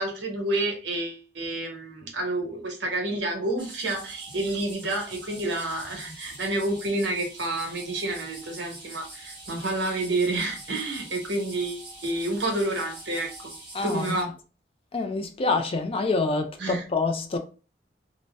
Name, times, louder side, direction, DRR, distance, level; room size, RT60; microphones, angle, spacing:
voice 1, 0.0-13.5 13.8-14.3 16.6-16.8, right 2 dB, 75° right, 1.0 m, -29 dB
sound 1, 3.6-14.2, right 2 dB, 25° right, 1.1 m, -44 dB
voice 2, 13.7-14.3 14.9-17.4, left 3 dB, 30° left, 0.4 m, -26 dB
2.7 x 2.0 x 3.3 m
head